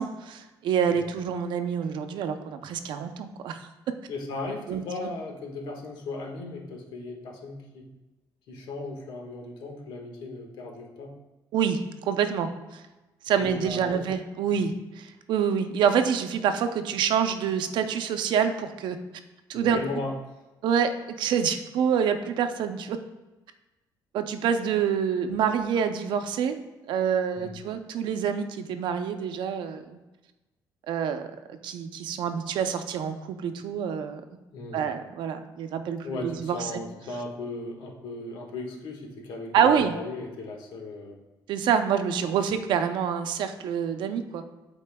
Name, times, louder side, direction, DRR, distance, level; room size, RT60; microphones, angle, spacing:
voice 1, 0.0-3.7 4.7-5.1 11.5-12.5 13.3-19.0 19.5-19.8 20.6-20.9 21.2-23.0 24.1-26.6 26.9-29.8 30.9-34.2 34.7-36.8 39.5-39.9 41.5-44.4, right 7 dB, 70° right, 8 dB, 0.6 m, -27 dB
voice 2, 4.1-7.9 8.5-11.1 13.4-14.1 14.5-14.6 19.5-20.2 27.4-27.6 34.5-34.8 36.0-41.2, left 2 dB, 80° left, 1 dB, 1.5 m, -37 dB
11.5 x 4.5 x 2.3 m, 1.1 s
cardioid pair, 140°, 8 cm